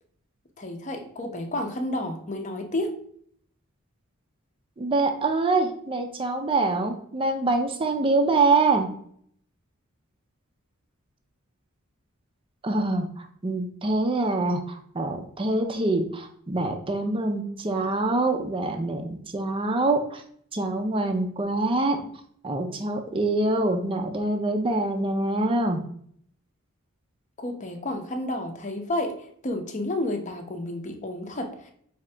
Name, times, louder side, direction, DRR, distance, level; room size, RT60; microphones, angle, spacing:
voice 1, 0.6-3.0 27.4-31.7, left 1 dB, 35° left, 5 dB, 0.7 m, -31 dB
voice 2, 4.8-8.9 12.6-20.2 20.5-22.0 22.4-25.8, right 2 dB, 25° right, 5 dB, 0.5 m, -25 dB
4.9 x 2.8 x 3.3 m, 0.63 s
head